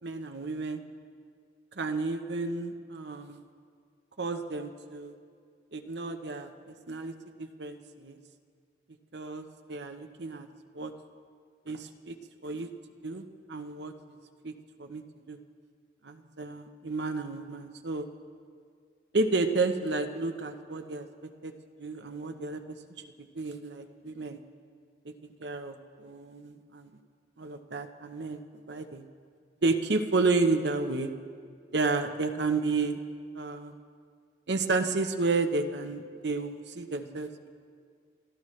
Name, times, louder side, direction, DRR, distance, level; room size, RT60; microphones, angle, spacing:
voice 1, 0.0-0.8 1.8-3.4 4.2-5.1 5.7-6.5 6.9-7.1 7.4-8.2 9.1-10.5 10.7-10.9 11.7-12.1 12.4-12.7 13.0-13.2 13.5-13.9 14.4-14.5 14.8-15.0 15.3-15.4 16.0-18.1 19.1-21.0 21.4-21.5 21.8-22.8 23.3-24.4 25.4-26.9 27.4-28.4 28.7-29.0 29.6-31.1 31.7-33.0 33.3-33.7 34.5-37.5, right 3 dB, 75° right, 6 dB, 0.9 m, -31 dB
28.0 x 13.0 x 3.2 m, 2.1 s
head